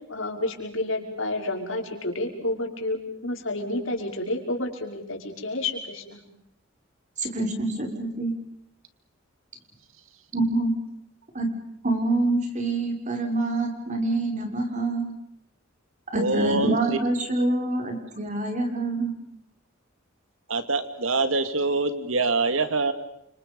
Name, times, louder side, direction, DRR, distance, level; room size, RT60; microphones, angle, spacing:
voice 1, 0.1-6.2, left 2 dB, 75° left, 2 dB, 5.6 m, -30 dB
voice 2, 7.2-8.3 10.3-10.7 11.3-11.5 11.8-15.1 16.1-19.1, right 2 dB, 40° right, 3 dB, 6.0 m, -26 dB
voice 3, 16.1-17.1 17.4-17.5 20.5-22.9, right 3 dB, 80° right, 9 dB, 2.5 m, -25 dB
30.0 x 27.0 x 5.5 m, 0.78 s
head